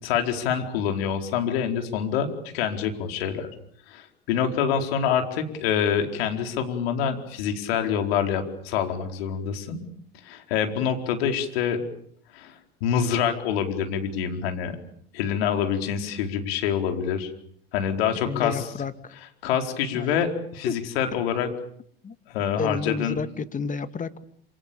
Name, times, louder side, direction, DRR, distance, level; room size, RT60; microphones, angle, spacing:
voice 1, 0.0-3.5 3.9-9.8 10.2-11.8 12.3-14.8 15.1-17.3 17.7-18.7 19.4-21.5 22.3-23.2, left 8 dB, 75° left, 5 dB, 4.6 m, -26 dB
voice 2, 18.2-19.1 19.9-20.1 20.7-20.8 22.0-22.2 22.6-24.2, left 5 dB, 25° left, 11 dB, 2.1 m, -31 dB
27.5 x 27.0 x 7.1 m, 0.64 s
hypercardioid pair, 90°, 31 cm